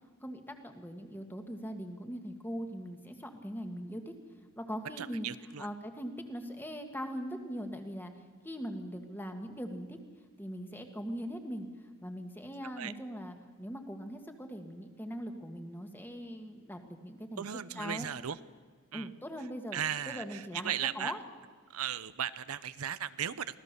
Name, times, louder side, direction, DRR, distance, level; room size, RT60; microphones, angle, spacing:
voice 1, 0.2-4.1 4.6-5.3 5.6-10.0 10.4-11.7 12.0-17.5 17.8-18.1 18.9-21.2, equal, 10° left, 6 dB, 1.6 m, -41 dB
voice 2, 5.0-5.7 12.8-12.9 17.4-18.4 18.9-19.1 19.7-21.1 21.7-23.6, right 9 dB, 85° right, 15 dB, 0.7 m, -36 dB
24.5 x 16.5 x 6.8 m, 1.5 s
head